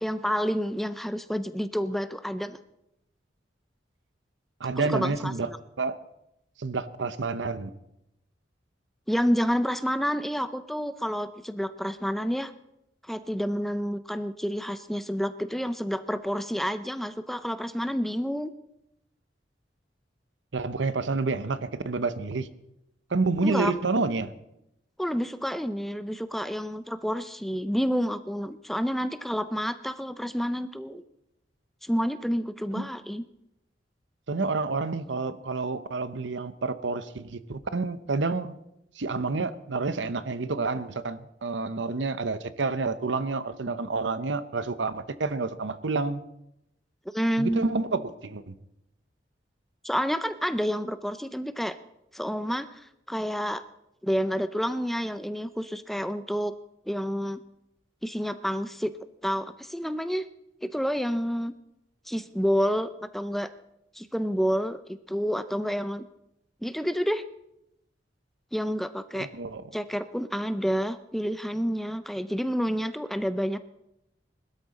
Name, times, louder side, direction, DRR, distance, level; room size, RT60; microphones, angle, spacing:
voice 1, 0.0-2.6 4.8-5.3 9.1-12.5 13.0-18.5 23.4-23.7 25.0-31.0 31.8-33.2 47.1-47.7 49.8-51.8 52.1-53.6 54.0-56.5 56.8-57.4 58.0-58.9 59.2-60.3 60.6-61.5 62.1-63.5 63.9-66.1 66.6-67.2 68.5-69.3 69.7-73.6, equal, ahead, 11 dB, 0.5 m, -29 dB
voice 2, 4.6-5.5 5.8-6.0 6.6-7.7 20.5-22.5 23.1-24.3 32.7-32.9 34.3-38.6 39.0-46.2 47.4-48.5 69.1-69.6, right 3 dB, 85° right, 13 dB, 0.8 m, -29 dB
20.5 x 12.5 x 4.1 m, 0.84 s
head